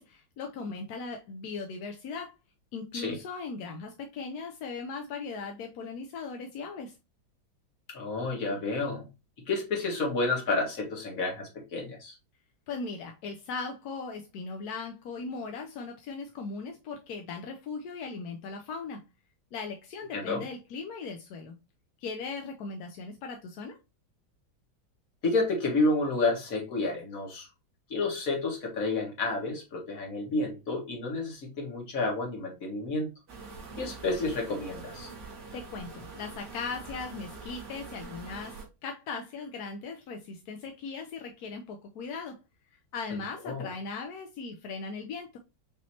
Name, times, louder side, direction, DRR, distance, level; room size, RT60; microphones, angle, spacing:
voice 1, 0.0-2.3 2.7-6.9 12.7-19.0 19.5-21.6 22.0-23.8 35.5-42.4 42.9-45.4, left 4 dB, 70° left, 1.0 m, -38 dB
voice 2, 7.9-9.1 9.5-12.2 20.1-20.4 25.2-27.5 27.9-33.1 33.8-35.1 43.4-43.7, left 3 dB, 45° left, 1.9 m, -30 dB
sound 1, 33.3-38.6, right 4 dB, 60° right, 2.2 m, -44 dB
6.1 x 3.0 x 2.8 m
omnidirectional pair, 2.1 m